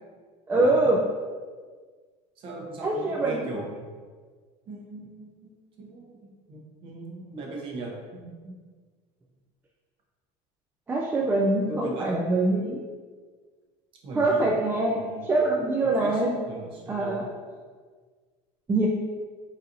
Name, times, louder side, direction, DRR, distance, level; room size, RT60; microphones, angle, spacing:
voice 1, 0.5-1.0 2.8-3.5 10.9-12.8 14.2-15.0 15.3-16.3 16.9-17.3 18.7-18.9, right 2 dB, 15° right, -3 dB, 0.3 m, -24 dB
voice 2, 2.4-3.9 4.7-5.5 5.8-8.6 11.7-12.2 14.0-14.5 14.9-15.3 15.8-17.3, right 3 dB, 45° right, -1 dB, 0.8 m, -39 dB
4.0 x 2.6 x 2.6 m, 1.5 s
cardioid pair, 130°, 13 cm